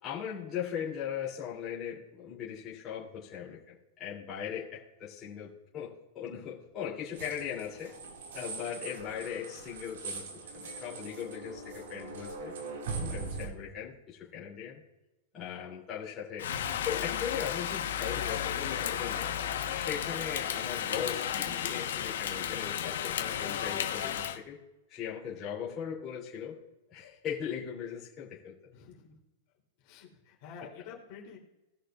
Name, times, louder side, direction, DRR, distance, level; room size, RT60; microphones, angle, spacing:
voice 1, 0.0-7.9 8.3-12.5 12.9-14.8 15.3-16.5 16.8-19.3 19.7-24.6 24.9-26.6 26.9-28.5, left 8 dB, 25° left, -6 dB, 3.2 m, -39 dB
sound 1, 7.1-13.5, right 4 dB, 80° right, 2.4 m, -41 dB
Rain, 16.4-24.4, left 9 dB, 90° left, 1.3 m, -33 dB
voice 2, 28.7-29.2 29.8-31.4, left 6 dB, 45° left, -2 dB, 3.4 m, -49 dB
19.5 x 6.6 x 2.5 m, 0.99 s
supercardioid pair, 155°, 0 cm